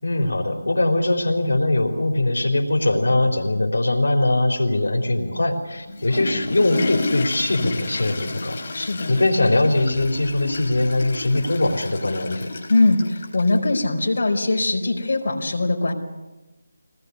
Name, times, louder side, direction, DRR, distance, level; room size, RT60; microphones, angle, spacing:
voice 1, 0.0-12.5, left 2 dB, 90° left, 1 dB, 3.9 m, -21 dB
Water / Toilet flush, 5.7-13.6, left 3 dB, 35° left, 4.1 m, -31 dB
voice 2, 8.7-9.1 12.7-15.9, left 2 dB, 55° left, 0 dB, 4.8 m, -21 dB
23.0 x 19.5 x 9.7 m, 1.1 s
figure-of-eight pair, 170°, 0 cm